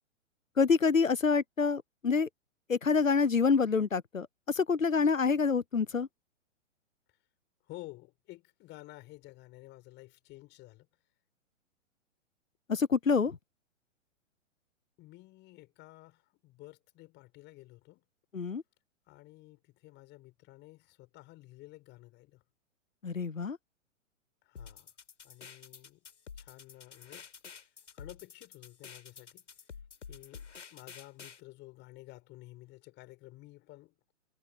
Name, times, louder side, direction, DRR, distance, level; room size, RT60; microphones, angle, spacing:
voice 1, 0.6-2.3 2.7-6.1 12.7-13.4 18.3-18.6 23.0-23.6, left 5 dB, 85° left, 0.9 m, -27 dB
voice 2, 7.7-10.9 15.0-18.0 19.1-22.4 24.4-24.9 25.2-26.0 26.4-27.3 27.9-29.4 30.1-34.1, left 19 dB, 30° left, 7.8 m, -52 dB
sound 1, 24.6-31.4, left 6 dB, 65° left, 5.2 m, -49 dB
figure-of-eight pair, 115°, 38 cm